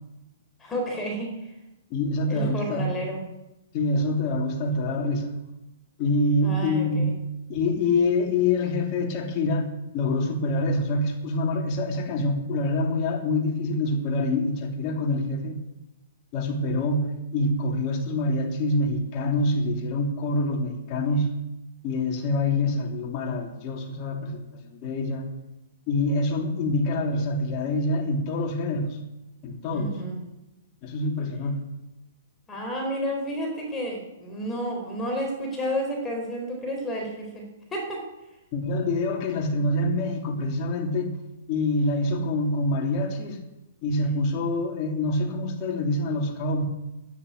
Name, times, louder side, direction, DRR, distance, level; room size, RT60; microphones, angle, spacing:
voice 1, 0.6-1.5 2.3-3.2 6.4-7.2 29.7-30.2 32.5-38.0, equal, 15° left, 2 dB, 4.1 m, -31 dB
voice 2, 1.9-3.0 3.7-5.4 6.0-15.6 16.3-21.4 21.8-25.3 25.9-29.0 29.4-29.9 30.8-31.6 38.5-41.1 41.5-43.4 43.8-46.6, left 2 dB, 40° left, 2 dB, 3.0 m, -26 dB
10.0 x 9.9 x 9.6 m, 0.95 s
hypercardioid pair, 125°, 0 cm